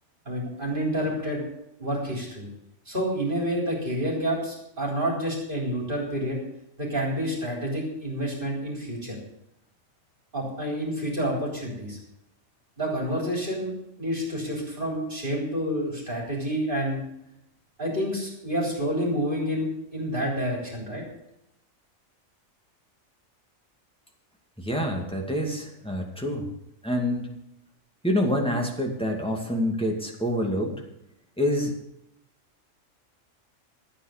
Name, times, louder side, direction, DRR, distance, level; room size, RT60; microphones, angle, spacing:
voice 1, 0.3-1.4 1.8-2.5 2.9-6.4 6.8-9.2 10.3-12.0 12.8-13.7 14.0-17.0 17.8-19.7 19.9-21.0, equal, 40° right, -2 dB, 4.0 m, -28 dB
voice 2, 24.6-26.5 26.8-27.3 28.0-30.8 31.4-31.7, equal, 5° left, 0 dB, 2.3 m, -27 dB
13.0 x 9.3 x 6.7 m, 0.81 s
omnidirectional pair, 1.4 m